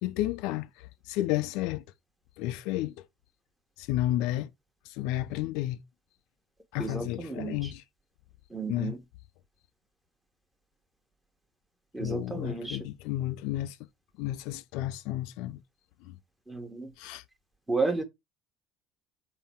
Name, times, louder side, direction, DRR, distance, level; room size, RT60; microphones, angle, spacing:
voice 1, 0.0-1.8 2.4-2.9 3.8-4.5 4.9-5.8 6.7-7.8 8.7-9.0 12.0-13.8 14.2-15.6 16.0-16.2 17.0-17.2, left 14 dB, 60° left, 0.3 m, -32 dB
voice 2, 6.8-7.7 8.5-9.0 11.9-12.8 16.5-16.9 17.7-18.0, right 3 dB, 10° right, 1.1 m, -32 dB
3.8 x 2.3 x 4.4 m
figure-of-eight pair, 60°, 0 cm